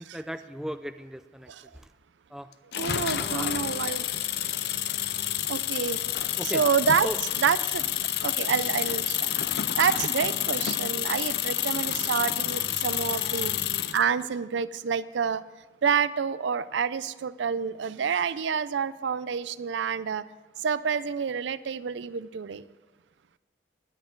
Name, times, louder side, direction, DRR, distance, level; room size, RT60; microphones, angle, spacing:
voice 1, 0.0-1.9 2.3-2.5 3.1-3.6 6.4-6.6 7.0-7.2, equal, 5° right, 9 dB, 0.4 m, -37 dB
sound 1, 2.7-14.0, left 11 dB, 60° left, 0.5 m, -29 dB
voice 2, 2.8-4.0 5.5-6.0 6.5-7.1 7.4-7.9 8.2-9.3 9.8-13.5 13.9-15.4 15.8-20.2 20.6-22.6, right 6 dB, 85° right, 16 dB, 0.4 m, -28 dB
19.0 x 10.5 x 3.8 m, 1.2 s
head